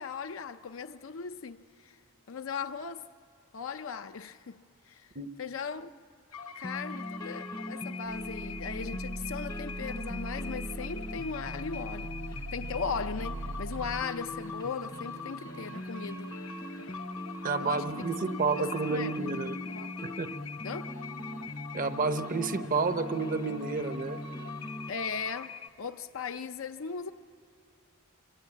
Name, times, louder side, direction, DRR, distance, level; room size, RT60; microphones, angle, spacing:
voice 1, 0.0-1.9 2.3-3.0 3.5-5.0 5.4-5.9 6.6-12.1 12.5-16.3 17.6-18.1 18.6-19.9 20.6-20.9 24.9-27.1, left 6 dB, 65° left, 0.5 m, -38 dB
sound 1, 6.3-25.7, left 5 dB, 80° left, 0.9 m, -44 dB
sound 2, 6.6-24.9, equal, 20° left, 0.7 m, -41 dB
sound 3, 8.1-14.0, right 2 dB, 80° right, 1.8 m, -40 dB
voice 2, 17.4-19.6 20.0-20.3 21.7-24.2, right 4 dB, 40° right, 0.8 m, -30 dB
26.0 x 23.0 x 8.5 m
head